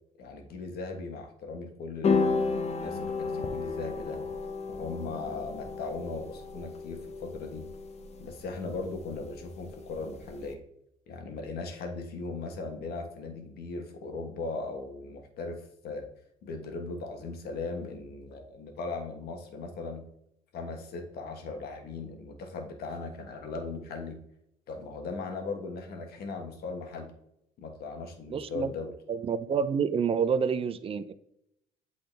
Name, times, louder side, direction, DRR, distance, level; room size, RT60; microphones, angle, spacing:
voice 1, 0.2-4.2 4.7-7.7 8.2-10.6 11.1-16.1 16.4-20.0 20.5-24.2 24.7-27.1 27.6-28.9, left 3 dB, 70° left, 5 dB, 1.4 m, -38 dB
sound 1, 2.0-10.5, left 4 dB, 40° left, 0.9 m, -33 dB
voice 2, 28.3-28.7 29.1-31.1, right 6 dB, 35° right, 11 dB, 0.5 m, -28 dB
8.5 x 4.0 x 3.4 m, 0.76 s
cardioid pair, 110°, 17 cm